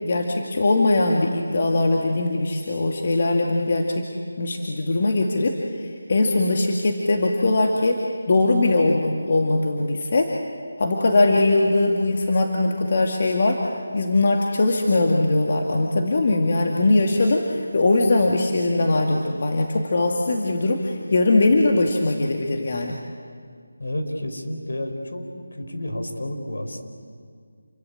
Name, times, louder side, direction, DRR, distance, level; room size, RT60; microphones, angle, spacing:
voice 1, 0.0-4.1 4.4-10.3 10.8-23.0, left 2 dB, 45° left, 1 dB, 2.2 m, -21 dB
voice 2, 23.8-25.2 25.5-26.9, left 1 dB, 70° left, 4 dB, 5.0 m, -30 dB
29.0 x 22.5 x 8.7 m, 2.1 s
figure-of-eight pair, 165°, 0 cm